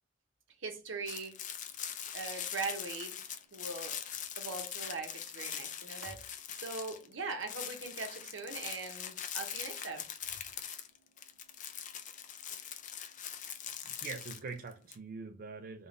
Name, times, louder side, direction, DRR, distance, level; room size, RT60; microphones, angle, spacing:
voice 1, 0.6-1.4 2.1-3.2 3.5-4.0 4.4-6.2 6.6-10.1, right 3 dB, 75° right, 0.9 m, -41 dB
sound 1, 1.1-7.1 7.4-15.0, left 9 dB, 40° left, 0.5 m, -42 dB
voice 2, 13.8-15.9, right 4 dB, 50° right, 0.4 m, -43 dB
3.7 x 2.4 x 3.7 m
head